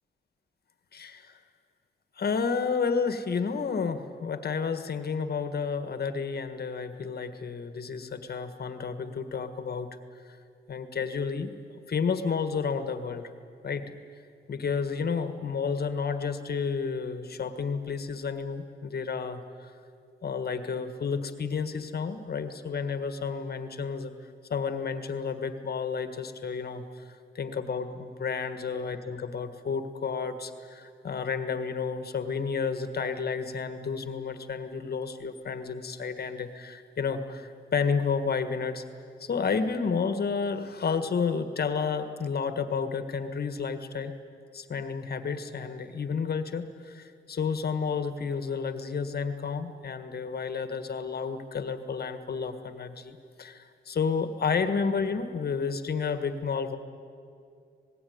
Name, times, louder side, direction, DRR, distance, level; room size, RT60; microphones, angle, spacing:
voice 1, 0.9-1.3 2.2-9.9 10.7-11.5 11.9-13.3 13.6-13.8 14.5-19.4 20.2-24.1 24.5-26.8 27.4-38.8 39.2-44.1 44.5-56.8, left 5 dB, 55° left, 9 dB, 1.6 m, -31 dB
27.0 x 19.5 x 9.5 m, 2.4 s
wide cardioid pair, 125°, 20 cm